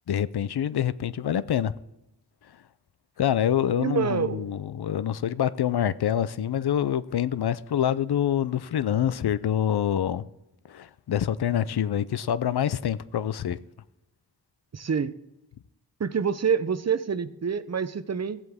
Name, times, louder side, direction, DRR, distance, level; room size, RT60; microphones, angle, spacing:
voice 1, 0.1-1.7 3.2-10.2 10.7-13.6, left 10 dB, 65° left, 0.6 m, -26 dB
voice 2, 3.8-4.4 14.7-15.1 16.0-18.4, right 6 dB, 40° right, 0.6 m, -27 dB
15.5 x 7.8 x 3.6 m
wide cardioid pair, 60°, 42 cm